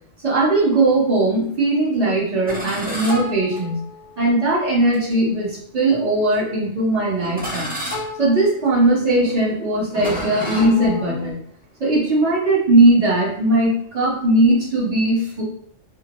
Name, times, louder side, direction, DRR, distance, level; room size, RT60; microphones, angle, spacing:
voice 1, 0.2-3.8 4.2-7.7 8.2-11.4 11.8-15.4, right 2 dB, 35° right, -6 dB, 1.1 m, -19 dB
sound 1, 2.5-4.1 4.9-5.1 5.9-6.4 7.2-11.3, left 1 dB, 10° right, 0.4 m, -31 dB
2.5 x 2.1 x 2.9 m, 0.63 s
omnidirectional pair, 1.2 m